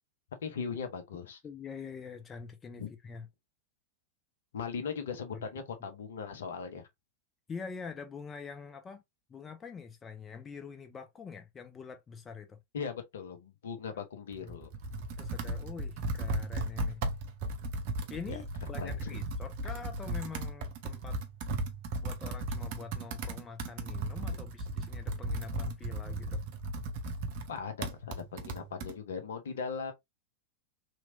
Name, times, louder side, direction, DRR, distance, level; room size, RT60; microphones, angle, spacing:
voice 1, 0.4-1.4 2.8-2.9 4.5-6.9 12.7-14.7 18.3-18.4 18.8-19.2 27.5-29.9, left 6 dB, 60° left, 0.8 m, -39 dB
voice 2, 1.4-3.3 5.3-5.5 7.5-9.0 9.3-12.6 14.4-14.5 14.9-17.0 18.1-21.2 22.0-26.4, left 5 dB, 20° left, 0.5 m, -45 dB
Computer keyboard, 14.3-28.9, right 2 dB, 45° right, 0.8 m, -36 dB
3.1 x 3.0 x 2.6 m
figure-of-eight pair, 90°, 0 cm